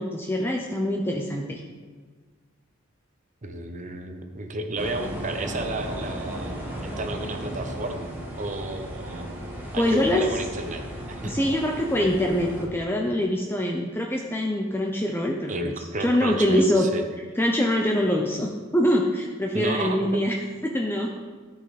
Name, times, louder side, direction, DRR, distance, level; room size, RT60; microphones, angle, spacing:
voice 1, 0.0-1.6 9.8-10.2 11.2-15.5 16.0-16.9 17.4-20.3 20.6-21.1, left 1 dB, 10° left, 0 dB, 0.6 m, -24 dB
voice 2, 3.4-9.3 9.7-11.4 15.5-17.0 19.5-20.1, right 2 dB, 40° right, 6 dB, 0.8 m, -32 dB
sound 1, 4.8-12.7, right 1 dB, 10° right, 1.5 m, -35 dB
13.5 x 5.4 x 4.1 m, 1.5 s
head